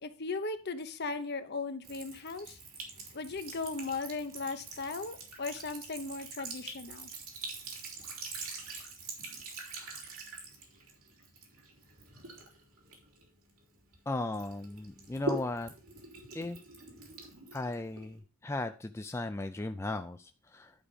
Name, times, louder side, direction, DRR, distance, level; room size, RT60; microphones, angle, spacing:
voice 1, 0.0-2.6 3.1-7.1, left 3 dB, 50° left, 9 dB, 1.0 m, -37 dB
Sink (filling or washing) / Trickle dribble, 1.8-14.0 14.3-18.2, right 2 dB, 80° right, 3.3 m, -44 dB
voice 2, 14.1-15.7 16.3-16.6 17.5-20.7, left 2 dB, 10° left, 7 dB, 0.4 m, -36 dB
11.0 x 5.0 x 5.0 m, 0.35 s
head